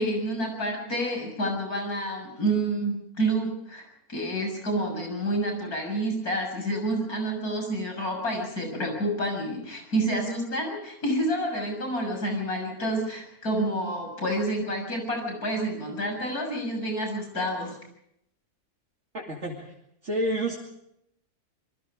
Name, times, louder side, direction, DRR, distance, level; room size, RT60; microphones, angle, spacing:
voice 1, 0.0-17.8, right 1 dB, 90° left, 3 dB, 7.3 m, -29 dB
voice 2, 19.1-19.7 20.0-20.6, right 1 dB, 50° right, -1 dB, 2.7 m, -29 dB
27.0 x 22.0 x 5.0 m, 0.76 s
omnidirectional pair, 1.5 m